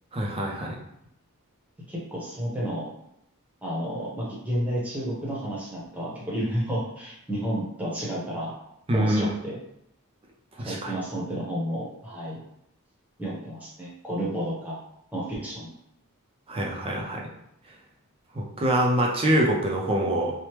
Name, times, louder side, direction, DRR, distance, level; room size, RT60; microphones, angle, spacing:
voice 1, 0.1-0.8 8.9-9.3 10.6-10.9 16.5-17.3 18.4-20.3, right 1 dB, 25° right, 0 dB, 0.4 m, -25 dB
voice 2, 1.9-2.9 3.6-8.5 8.9-9.6 10.6-12.4 13.2-14.7 15.1-15.7, equal, 5° right, -6 dB, 0.9 m, -31 dB
3.3 x 2.0 x 2.9 m, 0.78 s
head